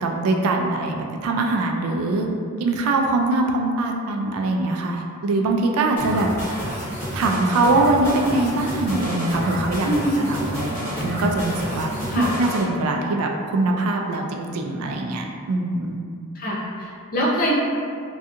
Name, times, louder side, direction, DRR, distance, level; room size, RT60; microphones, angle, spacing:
voice 1, 0.0-2.3 2.6-6.3 7.1-9.9 10.3-11.9 12.2-16.0, right 2 dB, 70° right, 3 dB, 0.3 m, -22 dB
sound 1, 6.0-12.6, equal, 10° left, 1.2 m, -29 dB
voice 2, 9.8-10.3 12.1-12.3 16.3-17.5, equal, 40° left, -5 dB, 0.5 m, -24 dB
2.7 x 2.3 x 2.4 m, 2.3 s
head